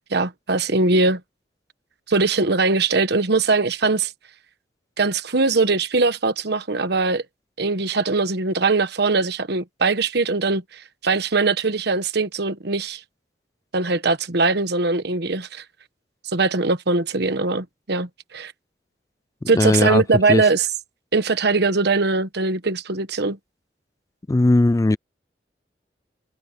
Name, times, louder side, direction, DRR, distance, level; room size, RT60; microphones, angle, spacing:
voice 1, 0.1-1.2 2.1-4.1 5.0-7.2 7.6-13.0 13.7-15.6 16.2-18.5 19.5-20.7 21.1-23.4, right 3 dB, 65° right, 1.2 m, -21 dB
voice 2, 19.5-20.0 20.3-20.4 24.3-25.0, left 2 dB, 20° left, 0.3 m, -17 dB
head